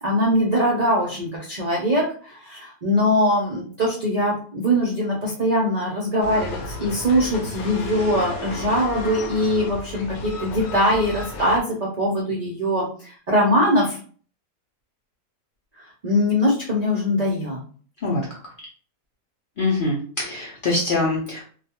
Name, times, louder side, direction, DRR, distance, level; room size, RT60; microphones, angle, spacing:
voice 1, 0.0-14.0 16.0-17.6, equal, 55° right, -4 dB, 0.4 m, -22 dB
sound 1, 6.2-11.6, left 3 dB, 80° left, 1.1 m, -33 dB
voice 2, 18.0-18.4 19.6-21.4, left 2 dB, 55° left, -4 dB, 0.6 m, -24 dB
2.3 x 2.3 x 2.8 m, 0.43 s
omnidirectional pair, 1.5 m